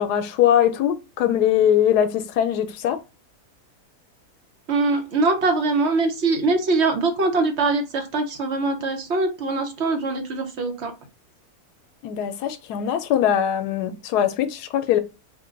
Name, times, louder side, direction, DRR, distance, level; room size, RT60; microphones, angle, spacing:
voice 1, 0.0-3.0 12.0-15.0, left 10 dB, 90° left, 1.1 m, -21 dB
voice 2, 4.7-10.9, right 3 dB, 50° right, 1.0 m, -22 dB
4.5 x 2.2 x 3.7 m
omnidirectional pair, 1.7 m